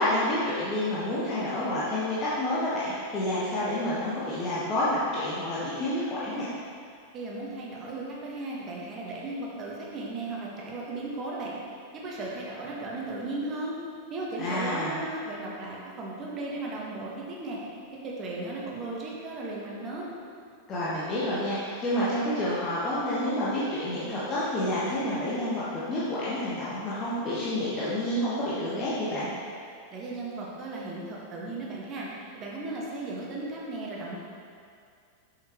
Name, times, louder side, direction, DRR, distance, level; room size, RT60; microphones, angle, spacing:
voice 1, 0.0-6.5 14.4-15.0 20.7-29.3, left 1 dB, 25° left, -9 dB, 1.3 m, -29 dB
voice 2, 7.1-11.5 11.9-13.7 14.1-17.6 18.0-20.1 29.9-32.1 32.3-34.2, right 2 dB, 30° right, -4 dB, 1.5 m, -36 dB
7.3 x 5.9 x 3.1 m, 2.3 s
figure-of-eight pair, 90°, 0 cm